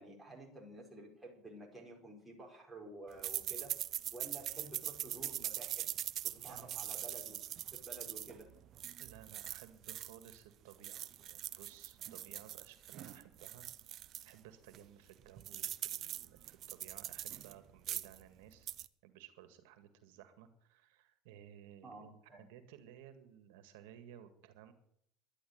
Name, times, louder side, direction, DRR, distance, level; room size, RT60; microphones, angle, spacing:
voice 1, 0.0-3.7 4.1-5.9 6.2-7.4 7.9-8.5 21.8-22.4, right 2 dB, 5° right, -1 dB, 4.6 m, -51 dB
sound 1, 3.2-10.4 10.7-14.3 14.7-14.8 15.1-17.5 17.8-18.2 18.5-18.9, right 12 dB, 45° right, 0.7 m, -42 dB
voice 2, 6.5-6.9 9.0-13.7 14.2-18.8 19.0-24.7, right 10 dB, 90° right, 9 dB, 1.9 m, -57 dB
11.5 x 10.5 x 9.4 m, 0.70 s
cardioid pair, 145°, 0 cm